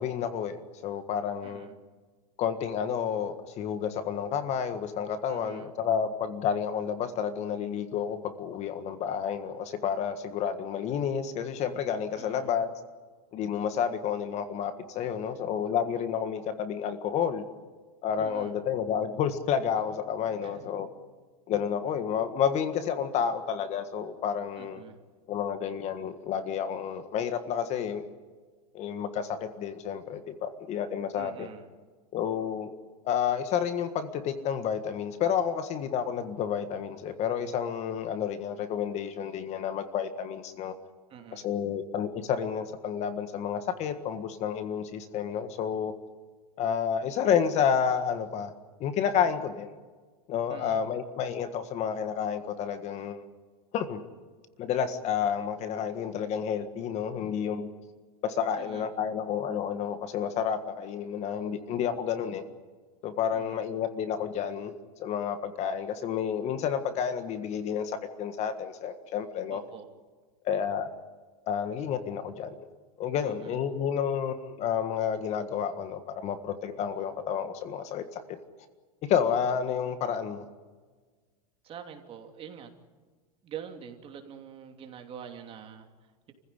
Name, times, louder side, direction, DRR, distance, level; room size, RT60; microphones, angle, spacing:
voice 1, 0.0-1.7 2.4-12.7 13.3-17.4 18.0-20.9 21.5-24.8 25.3-28.0 28.7-31.5 32.1-32.7 33.0-40.7 41.3-45.9 46.6-48.5 48.8-49.7 50.3-53.2 53.7-54.0 54.6-57.7 58.2-62.4 63.0-64.7 65.0-69.6 70.4-70.9 71.5-72.5 73.0-78.2 79.0-80.4, left 8 dB, 35° left, 10 dB, 1.7 m, -30 dB
voice 2, 1.4-1.8 5.3-5.7 12.2-12.5 18.2-18.5 20.4-20.7 24.6-25.0 31.1-31.7 41.1-41.5 50.5-50.8 58.6-58.9 63.3-63.6 69.5-69.9 73.2-73.6 81.6-82.7 83.4-86.3, right 8 dB, 30° right, 4 dB, 2.9 m, -45 dB
29.0 x 15.5 x 10.0 m, 1.4 s
supercardioid pair, 145°, 20 cm